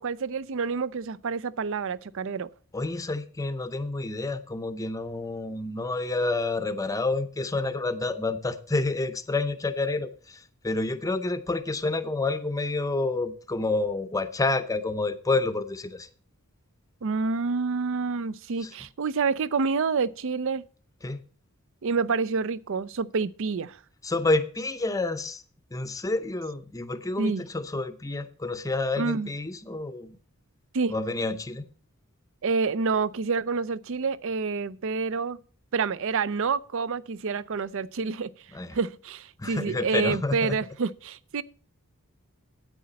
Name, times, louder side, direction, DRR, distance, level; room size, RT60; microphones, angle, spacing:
voice 1, 0.0-2.5 17.0-20.6 21.8-23.8 27.2-27.4 29.0-29.3 30.7-30.9 32.4-35.4 35.7-38.3 38.7-41.4, right 4 dB, 60° right, 0.5 m, -28 dB
voice 2, 2.7-16.1 18.6-18.7 21.0-21.2 24.0-25.4 25.7-30.2 30.9-31.7 38.5-38.8 39.4-40.6, left 2 dB, 15° left, 0.6 m, -29 dB
9.9 x 8.6 x 4.0 m
head